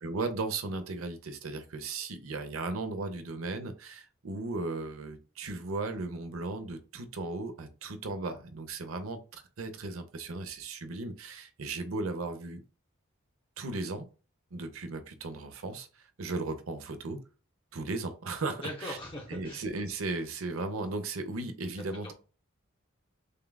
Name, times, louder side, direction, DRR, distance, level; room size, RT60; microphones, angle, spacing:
voice 1, 0.0-12.6 13.6-14.1 14.5-17.2 17.7-19.0 19.3-22.1, right 3 dB, 85° right, 8 dB, 0.8 m, -36 dB
voice 2, 18.6-19.6 21.8-22.1, left 1 dB, 25° left, -1 dB, 0.9 m, -41 dB
6.5 x 2.4 x 2.2 m, 0.35 s
head